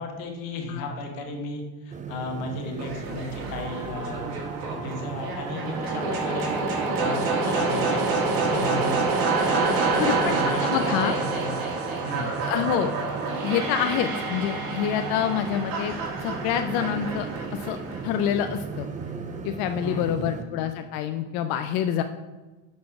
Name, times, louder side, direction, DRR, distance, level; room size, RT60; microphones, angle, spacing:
voice 1, 0.0-6.5 6.9-9.0 9.4-11.6 12.0-12.3 19.8-20.3, left 2 dB, 90° left, 3 dB, 1.4 m, -34 dB
sound 1, 1.9-20.4, right 5 dB, 20° right, 0.5 m, -37 dB
sound 2, 2.8-18.8, right 3 dB, 60° right, 1.7 m, -28 dB
voice 2, 10.0-10.4 10.7-11.2 12.4-12.9 13.4-17.8 18.0-18.9 19.4-22.0, left 9 dB, 65° left, 8 dB, 0.5 m, -27 dB
6.2 x 4.2 x 4.7 m, 1.2 s
supercardioid pair, 95°, 40 cm